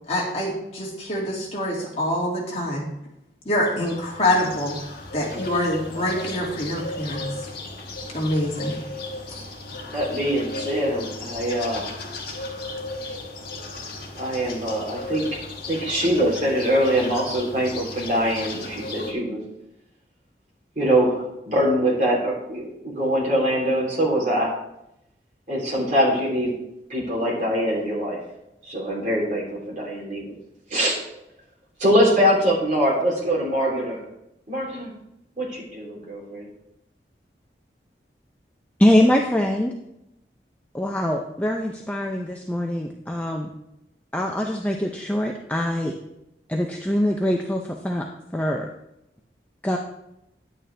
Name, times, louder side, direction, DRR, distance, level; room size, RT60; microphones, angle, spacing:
voice 1, 0.1-2.9 3.4-4.8 5.1-7.3 8.1-8.8 9.3-9.4, left 1 dB, 35° left, -3 dB, 2.3 m, -25 dB
sound 1, 3.6-19.1, left 2 dB, 55° left, 1.7 m, -36 dB
voice 2, 9.9-11.9 14.2-15.2 15.7-19.4 20.7-24.5 25.5-26.5 26.9-28.2 28.7-30.3 30.7-31.0 31.8-34.0 34.5-34.9 35.4-36.5, equal, 45° right, -4 dB, 3.2 m, -23 dB
voice 3, 38.8-39.7 40.7-43.5 44.1-45.9 46.5-48.0 48.3-48.7 49.6-49.8, left 1 dB, 10° left, 1 dB, 0.5 m, -23 dB
10.5 x 8.9 x 3.3 m, 0.85 s
head